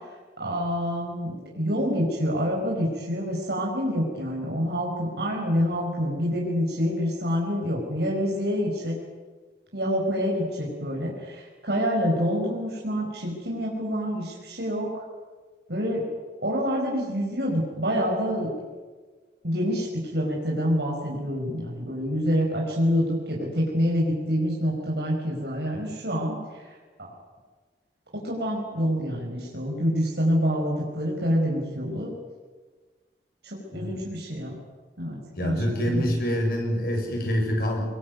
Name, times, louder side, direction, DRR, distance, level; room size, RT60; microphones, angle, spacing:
voice 1, 0.4-9.0 9.7-15.0 15.7-16.1 16.4-18.5 19.4-26.7 27.0-27.1 28.1-32.1 33.4-34.6 35.0-35.5 35.8-36.0, equal, 70° right, -2 dB, 5.3 m, -27 dB
voice 2, 33.7-34.0 35.4-37.8, equal, 55° left, 1 dB, 7.3 m, -26 dB
23.5 x 21.5 x 9.5 m, 1.4 s
head